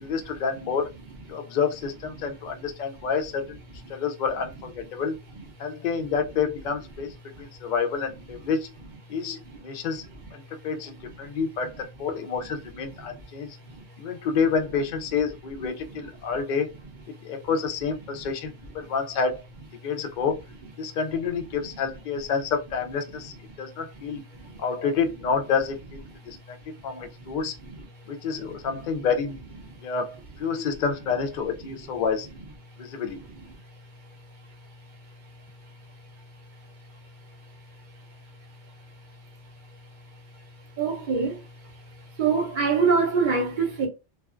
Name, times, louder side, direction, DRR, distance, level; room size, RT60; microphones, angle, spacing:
voice 1, 0.0-0.9 1.3-3.6 3.9-5.1 5.6-8.7 9.1-10.1 10.3-13.6 14.0-16.7 17.2-19.4 19.8-20.4 20.8-24.2 24.6-26.6 26.8-27.5 28.1-29.4 29.8-32.3 32.8-33.2, left 6 dB, 60° left, 0.5 m, -28 dB
voice 2, 40.8-41.4 42.2-43.9, right 5 dB, 50° right, 0.7 m, -24 dB
2.4 x 2.3 x 2.4 m
omnidirectional pair, 1.1 m